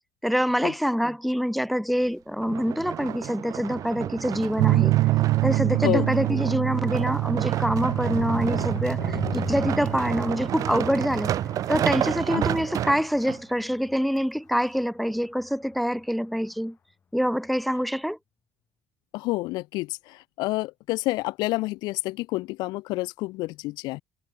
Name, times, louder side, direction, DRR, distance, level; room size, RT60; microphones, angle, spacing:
voice 1, 0.2-5.0 5.4-11.3 11.7-16.8 17.1-18.2, equal, ahead, 0.8 m, -25 dB
sound 1, 2.4-13.4 14.0-14.1, right 11 dB, 55° right, 1.2 m, -31 dB
sound 2, 4.6-12.2, right 19 dB, 80° right, 1.6 m, -26 dB
sound 3, 5.5-13.9 14.4-14.5 14.8-14.9 15.2-15.4, left 6 dB, 30° left, 1.3 m, -39 dB
voice 2, 19.1-24.0, left 20 dB, 80° left, 0.6 m, -29 dB
cardioid pair, 115°, 7 cm